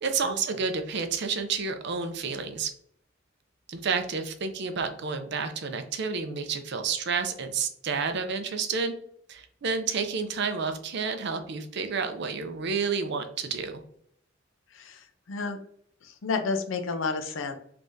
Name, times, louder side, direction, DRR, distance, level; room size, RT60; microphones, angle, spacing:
voice 1, 0.0-2.7 3.7-8.9 9.3-13.8, right 5 dB, 60° right, 7 dB, 0.5 m, -30 dB
voice 2, 14.7-15.6 16.0-17.6, left 4 dB, 80° left, 7 dB, 0.5 m, -31 dB
3.5 x 3.4 x 2.6 m, 0.65 s
head